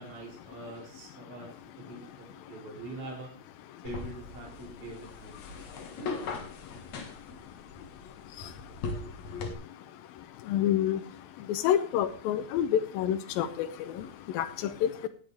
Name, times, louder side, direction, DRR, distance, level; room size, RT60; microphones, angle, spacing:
voice 1, 0.0-1.5 1.8-3.3 3.8-5.4, right 2 dB, 35° right, -3 dB, 3.6 m, -43 dB
sound 1, 3.8-9.5, left 4 dB, 55° left, 2.2 m, -40 dB
voice 2, 10.5-11.0 11.5-13.7 14.3-14.5 14.8-14.9, left 10 dB, 90° left, 9 dB, 2.0 m, -27 dB
17.0 x 9.2 x 3.5 m, 0.43 s
omnidirectional pair, 5.1 m